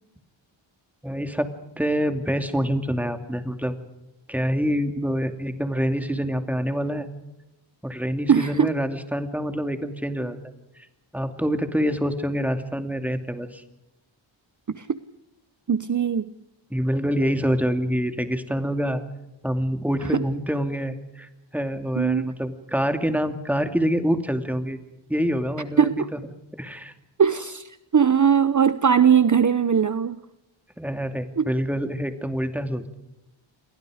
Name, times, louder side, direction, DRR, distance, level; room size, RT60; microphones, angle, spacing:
voice 1, 1.0-1.5 1.8-3.8 4.3-7.1 7.8-10.4 11.1-13.6 16.7-19.0 19.4-24.8 25.1-25.9 26.6-26.9 30.8-32.9, equal, 5° right, 7 dB, 2.5 m, -26 dB
voice 2, 8.3-8.7 14.7-15.0 15.7-16.3 20.0-20.2 21.9-22.3 25.8-26.0 27.2-30.2 31.4-31.5, right 7 dB, 40° right, 13 dB, 0.8 m, -20 dB
29.5 x 22.5 x 5.0 m, 0.93 s
wide cardioid pair, 95°, 47 cm